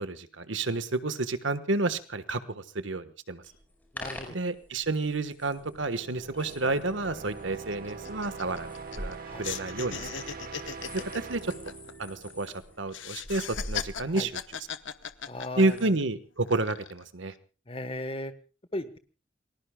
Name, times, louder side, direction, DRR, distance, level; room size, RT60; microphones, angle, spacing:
voice 1, 0.0-3.4 4.3-10.0 10.9-11.5 12.0-14.3 15.6-17.3, right 2 dB, 75° right, 12 dB, 1.4 m, -30 dB
sound 1, 3.4-15.9, equal, 10° left, 5.2 m, -46 dB
voice 2, 3.9-4.3 9.2-9.5 14.1-14.3 15.3-15.9 17.7-18.3 18.7-19.0, left 1 dB, 30° left, 11 dB, 1.3 m, -36 dB
sound 2, 5.4-13.1, right 4 dB, 45° right, 1.9 m, -43 dB
sound 3, 6.6-6.7 7.0-7.2 7.5-9.1 9.4-12.5 12.9-16.0 16.5-17.0, left 8 dB, 70° left, 1.0 m, -38 dB
29.0 x 20.0 x 2.3 m, 0.36 s
head